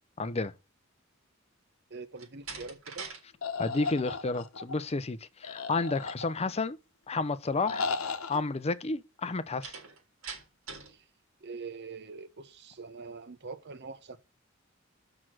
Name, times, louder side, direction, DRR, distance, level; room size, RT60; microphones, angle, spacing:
voice 1, 0.2-0.5 3.6-6.8 7.1-7.9 8.3-9.8, left 3 dB, 30° left, 0.6 m, -31 dB
voice 2, 1.9-3.1 7.7-7.8 10.9-11.0 11.4-14.2, right 4 dB, 55° right, 0.9 m, -44 dB
Slam, 2.1-3.2 3.5-4.0 9.6-11.0, right 5 dB, 85° right, 3.8 m, -43 dB
sound 1, 3.4-4.7 5.4-6.6 7.6-8.4, left 4 dB, 85° left, 0.9 m, -35 dB
6.5 x 6.1 x 6.2 m
head